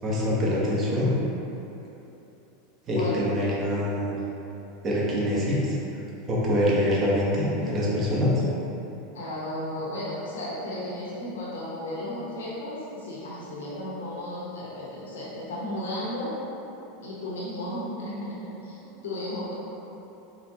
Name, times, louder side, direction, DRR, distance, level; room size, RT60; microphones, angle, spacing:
voice 1, 0.0-1.1 2.9-4.1 4.8-5.8 6.3-8.3, equal, 35° right, -6 dB, 1.0 m, -25 dB
voice 2, 9.1-16.3 17.0-19.5, left 1 dB, 85° left, -8 dB, 0.9 m, -34 dB
4.0 x 2.9 x 2.7 m, 3.0 s
hypercardioid pair, 105°, 0 cm